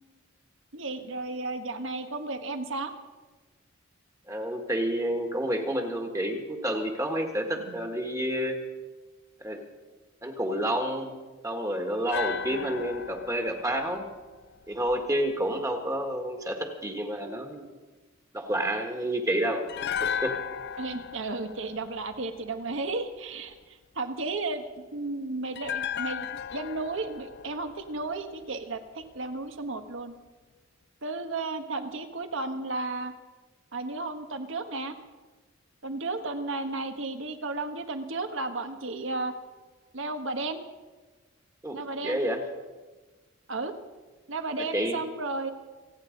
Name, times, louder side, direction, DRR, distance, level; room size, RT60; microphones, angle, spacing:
voice 1, 0.7-2.9 7.6-7.8 12.5-12.8 20.8-30.1 31.0-33.1 33.7-35.0 35.8-39.3 39.9-40.6 41.7-42.2 43.5-43.7 44.3-45.5, right 3 dB, 60° right, 8 dB, 1.3 m, -34 dB
voice 2, 4.3-8.6 9.4-9.6 10.2-11.1 11.4-14.0 14.7-17.6 18.3-19.6 20.0-20.3 41.6-41.8 42.0-42.4 44.6-45.0, right 1 dB, 15° right, 4 dB, 1.7 m, -29 dB
sound 1, 12.1-15.3 19.7-22.9 25.6-28.8 29.0-29.2, left 8 dB, 50° left, 0.5 m, -36 dB
28.5 x 9.6 x 5.3 m, 1.3 s
head